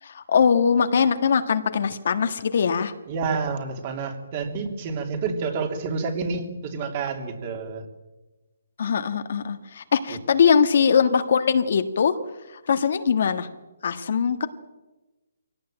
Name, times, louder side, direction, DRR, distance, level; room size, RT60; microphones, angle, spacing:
voice 1, 0.0-2.9 8.8-12.2 12.5-13.5 13.8-14.5, left 6 dB, 50° left, 9 dB, 1.5 m, -21 dB
voice 2, 3.1-7.8, right 4 dB, 30° right, 5 dB, 2.9 m, -29 dB
24.0 x 17.5 x 9.0 m, 1.1 s
hypercardioid pair, 170°, 0 cm